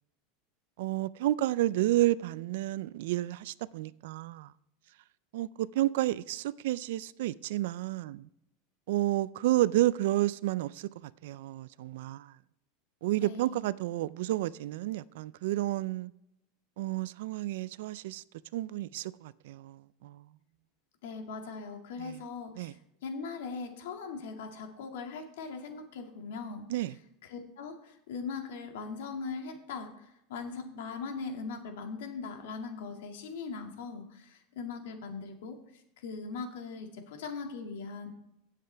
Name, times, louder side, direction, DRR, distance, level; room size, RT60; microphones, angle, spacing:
voice 1, 0.8-4.5 5.3-8.3 8.9-12.3 13.0-16.1 16.8-18.2 18.5-20.2 22.0-22.2 22.6-22.7 26.7-27.0, right 15 dB, 65° right, 0.4 m, -31 dB
voice 2, 13.2-13.6 21.0-26.7 27.2-35.6 36.0-38.1, left 4 dB, 80° left, 2.1 m, -40 dB
17.0 x 7.6 x 3.4 m
supercardioid pair, 170°, 0 cm